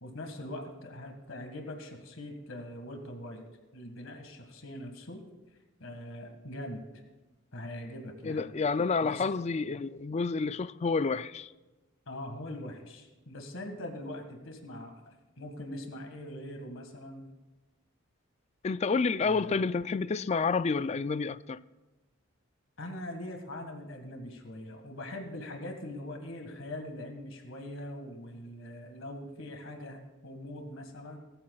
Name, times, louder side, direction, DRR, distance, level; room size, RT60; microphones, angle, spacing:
voice 1, 0.0-3.4 3.7-5.2 5.8-6.8 7.5-8.5 9.0-9.3 12.1-17.3 19.2-19.5 22.8-31.2, left 1 dB, 70° left, 1.8 m, -42 dB
voice 2, 8.2-11.5 18.6-21.6, left 4 dB, 30° left, 0.3 m, -29 dB
19.5 x 13.5 x 2.4 m
head